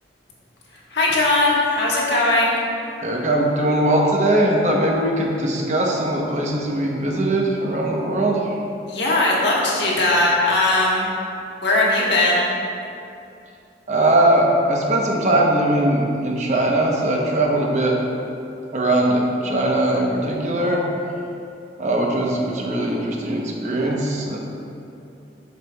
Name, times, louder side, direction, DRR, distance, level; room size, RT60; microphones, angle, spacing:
voice 1, 0.9-2.6 8.9-11.1 11.6-12.4, left 2 dB, 80° left, -5 dB, 1.4 m, -19 dB
voice 2, 3.0-8.6 13.9-17.9 18.7-20.8 21.8-24.4, right 1 dB, 40° right, -1 dB, 0.8 m, -20 dB
8.0 x 6.3 x 2.3 m, 2.6 s
head